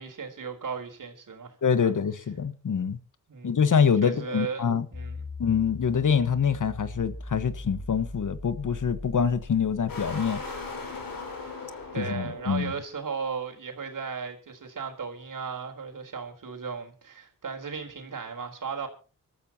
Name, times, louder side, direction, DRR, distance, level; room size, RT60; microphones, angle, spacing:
voice 1, 0.0-1.9 3.3-3.7 4.0-5.3 11.4-18.9, right 5 dB, 70° right, 4.0 m, -36 dB
voice 2, 1.6-3.0 3.4-4.8 5.4-10.4 12.0-12.7, left 7 dB, 65° left, 1.4 m, -25 dB
sound 1, 4.9-11.2, left 2 dB, 25° left, 3.0 m, -41 dB
sound 2, 9.9-12.9, left 3 dB, 85° left, 5.5 m, -38 dB
25.5 x 13.5 x 2.9 m
cardioid pair, 45°, 33 cm